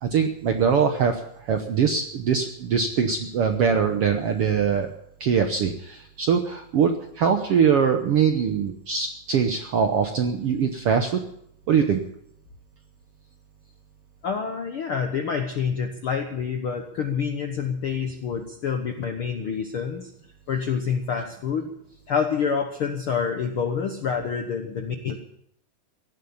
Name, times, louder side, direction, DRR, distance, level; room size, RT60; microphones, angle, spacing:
voice 1, 0.0-4.9 5.2-11.2 11.7-12.0, right 6 dB, 70° right, 5 dB, 1.4 m, -22 dB
voice 2, 14.2-20.1 20.5-21.7 22.1-25.2, left 6 dB, 70° left, 5 dB, 1.3 m, -27 dB
16.0 x 11.5 x 7.0 m, 0.71 s
omnidirectional pair, 3.9 m